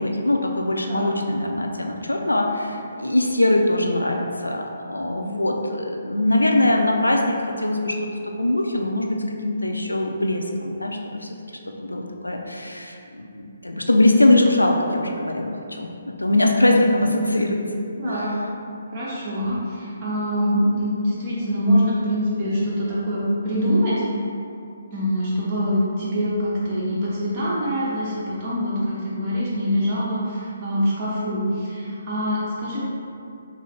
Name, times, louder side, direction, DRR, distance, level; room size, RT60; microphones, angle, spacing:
voice 1, 0.0-4.6 4.9-11.3 11.8-15.9 16.2-17.6 18.0-18.3, left 1 dB, 80° left, 1 dB, 0.4 m, -22 dB
voice 2, 18.0-18.3 18.9-24.0 24.9-32.8, equal, 30° right, -8 dB, 1.0 m, -24 dB
5.3 x 2.0 x 3.2 m, 2.5 s
figure-of-eight pair, 135°, 0 cm